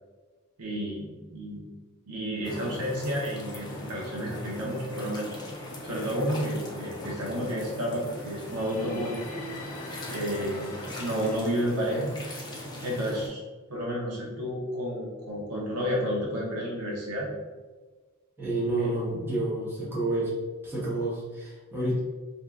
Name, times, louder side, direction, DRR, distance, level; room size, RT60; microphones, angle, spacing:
voice 1, 0.6-1.6 2.1-5.4 5.8-9.2 10.1-12.2 12.8-13.4 13.7-17.3 18.8-18.9, equal, 80° right, -4 dB, 0.8 m, -31 dB
sound 1, 2.4-13.3, left 1 dB, 20° left, 0.5 m, -40 dB
sound 2, 8.4-11.4, left 1 dB, 70° left, 0.6 m, -42 dB
voice 2, 18.4-20.3 20.6-22.0, right 2 dB, 10° right, -9 dB, 0.9 m, -29 dB
2.7 x 2.3 x 3.4 m, 1.3 s
head